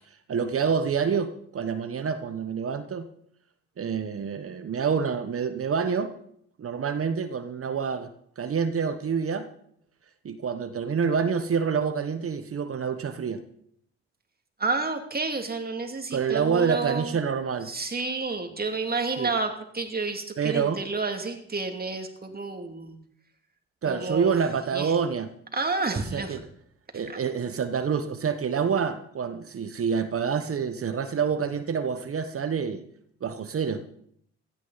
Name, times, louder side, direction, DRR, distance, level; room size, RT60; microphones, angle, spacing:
voice 1, 0.3-3.1 3.8-6.1 6.6-8.1 8.4-9.5 10.2-13.4 16.1-17.7 19.2-19.3 20.4-20.8 23.8-25.3 25.9-26.4 26.9-32.8 33.2-33.8, right 6 dB, 45° right, 10 dB, 1.2 m, -27 dB
voice 2, 14.6-17.2 17.7-23.0 23.8-24.4 24.7-24.9 25.5-26.4, right 3 dB, 30° right, 5 dB, 2.6 m, -30 dB
16.0 x 13.5 x 4.1 m, 0.67 s
hypercardioid pair, 50°, 30 cm